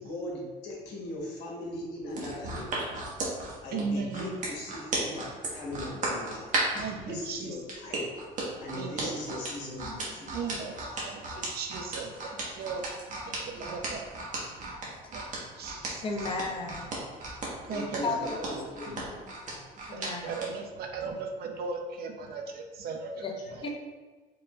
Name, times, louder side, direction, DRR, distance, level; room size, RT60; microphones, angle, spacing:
voice 1, 0.0-2.9 3.6-8.1 8.6-10.8 12.0-12.1 13.4-13.6 14.8-14.9 16.9-17.0 17.7-19.6, left 1 dB, 85° left, -3 dB, 1.3 m, -40 dB
sound 1, 2.1-6.9 7.7-20.5 20.9-21.1, right 3 dB, 50° right, 1.3 m, -35 dB
voice 2, 3.4-4.4 6.8-7.7 8.8-9.4 10.3-12.9 13.3-14.2 14.4-14.6 15.1-16.1 17.7-18.6 19.9-23.2 23.5-23.7, right 4 dB, 65° right, 3 dB, 0.7 m, -37 dB
voice 3, 16.0-16.9 18.0-18.3 19.9-20.5 23.2-23.3 23.6-23.7, left 4 dB, 30° left, 2 dB, 0.7 m, -33 dB
4.8 x 3.7 x 2.5 m, 1.3 s
cardioid pair, 110°, 17 cm